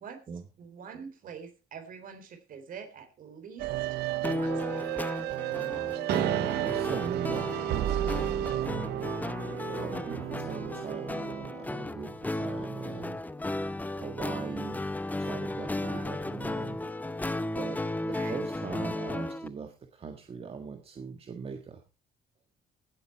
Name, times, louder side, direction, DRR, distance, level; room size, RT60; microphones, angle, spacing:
voice 1, 0.6-3.7 4.2-5.1 15.8-16.1 18.1-18.4, right 6 dB, 55° right, 7 dB, 3.7 m, -45 dB
sound 1, 3.6-11.6, right 14 dB, 75° right, 0.6 m, -32 dB
sound 2, 4.2-19.5, left 1 dB, 10° left, 0.7 m, -35 dB
voice 2, 6.3-9.0 9.7-13.2 14.0-16.8 17.5-21.8, right 5 dB, 35° right, 5 dB, 1.6 m, -41 dB
16.5 x 8.3 x 4.5 m, 0.31 s
cardioid pair, 110°, 17 cm